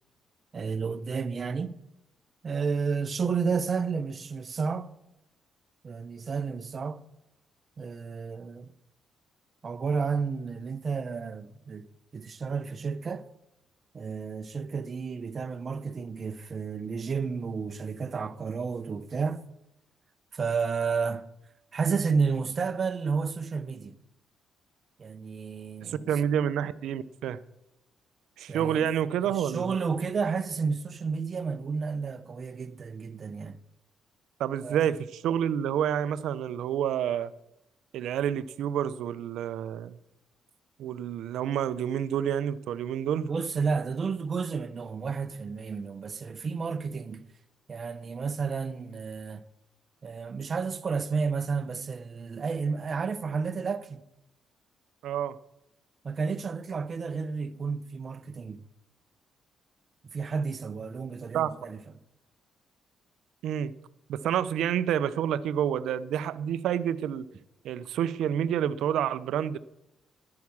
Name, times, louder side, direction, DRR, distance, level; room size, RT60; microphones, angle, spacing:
voice 1, 0.5-1.8 2.4-4.9 5.8-7.0 7.8-8.7 9.6-11.9 12.1-13.3 13.9-19.4 20.3-21.3 21.7-24.0 25.0-26.1 28.5-28.9 29.2-33.6 34.6-34.8 43.2-47.3 47.7-49.4 50.0-54.1 56.0-58.7 60.1-61.8, right 5 dB, 40° right, 0.8 m, -31 dB
voice 2, 25.9-27.4 28.4-29.8 34.4-37.3 37.9-39.9 40.8-43.3 55.0-55.4 61.3-61.5 63.4-63.7 64.1-67.3 67.6-69.6, right 9 dB, 80° right, 0.6 m, -28 dB
10.5 x 9.4 x 7.2 m
cardioid pair, 90°, 0 cm